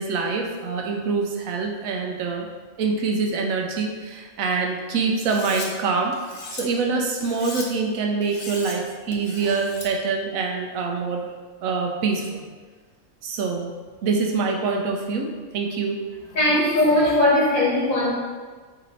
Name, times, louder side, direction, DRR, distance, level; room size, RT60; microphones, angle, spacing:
voice 1, 0.0-2.5 2.8-6.1 6.5-11.2 11.6-12.4 13.2-13.7 14.0-16.0, right 4 dB, 90° right, 2 dB, 1.1 m, -25 dB
Cutlery silverware, 5.2-5.7 6.1-6.6 7.2-7.7 8.2-8.8 9.1-9.9, left 3 dB, 65° left, 0.9 m, -37 dB
voice 2, 16.3-18.1, left 1 dB, 85° left, -7 dB, 2.0 m, -19 dB
4.0 x 2.7 x 4.1 m, 1.5 s
omnidirectional pair, 1.4 m